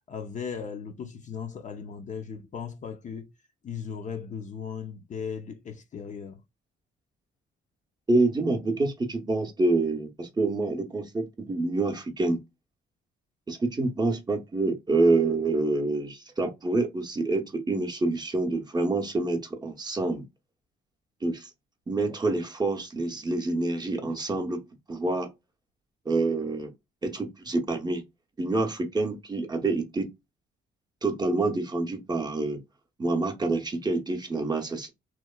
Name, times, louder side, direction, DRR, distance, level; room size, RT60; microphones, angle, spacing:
voice 1, 0.1-3.3 3.6-6.4, left 6 dB, 40° left, 0.4 m, -37 dB
voice 2, 8.1-12.4 13.5-20.3 21.2-21.5 21.9-25.3 26.1-26.7 27.0-28.0 28.4-30.1 31.0-32.6 33.0-34.9, right 2 dB, 20° right, 0.6 m, -27 dB
2.9 x 2.0 x 2.2 m
cardioid pair, 90°, 20 cm